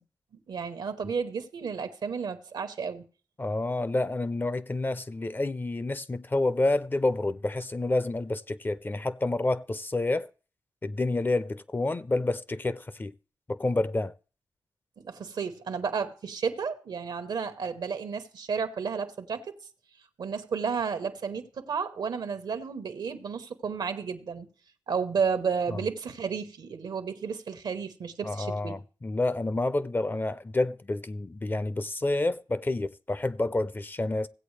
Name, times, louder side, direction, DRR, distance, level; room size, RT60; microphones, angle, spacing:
voice 1, 0.5-3.0 15.0-19.5 20.2-24.5 24.9-28.8, right 6 dB, 85° right, 0.9 m, -32 dB
voice 2, 3.4-10.3 10.8-13.1 13.5-14.1 25.7-25.8 28.2-34.3, left 2 dB, 25° left, 0.4 m, -29 dB
16.0 x 8.1 x 3.2 m
cardioid pair, 65°, 7 cm